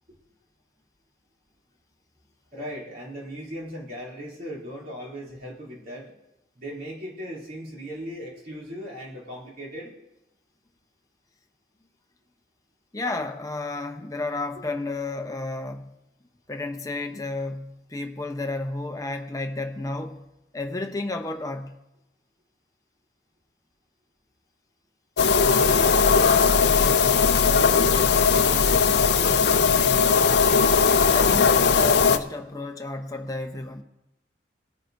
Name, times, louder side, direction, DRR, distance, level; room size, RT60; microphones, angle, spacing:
voice 1, 2.5-6.1 6.5-9.9 14.6-14.7 25.5-30.2, equal, 50° right, 2.9 m, -38 dB
voice 2, 12.9-15.9 16.5-20.2 20.5-21.8 31.1-33.8, left 2 dB, 20° left, 0.7 m, -32 dB
sound 1, 25.2-32.2, left 5 dB, 60° left, 0.5 m, -19 dB
19.5 x 9.6 x 2.6 m
head